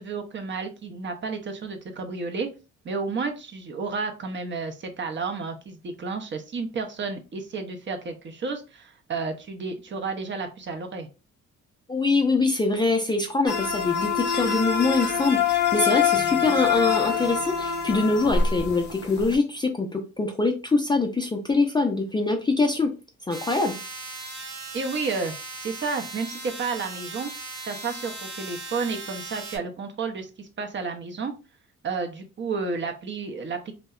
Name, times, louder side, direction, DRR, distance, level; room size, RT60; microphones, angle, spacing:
voice 1, 0.0-2.5 2.8-11.1 24.7-25.3 25.6-27.3 27.7-31.3 31.8-33.7, right 4 dB, 40° right, 6 dB, 0.5 m, -31 dB
voice 2, 11.9-22.9 23.3-23.8, left 3 dB, 15° left, 3 dB, 0.3 m, -24 dB
sound 1, 13.5-19.4, left 7 dB, 35° left, 0.7 m, -25 dB
sound 2, 23.3-29.6, right 3 dB, 65° right, 0.9 m, -38 dB
2.7 x 2.1 x 2.3 m, 0.31 s
cardioid pair, 90°, 30 cm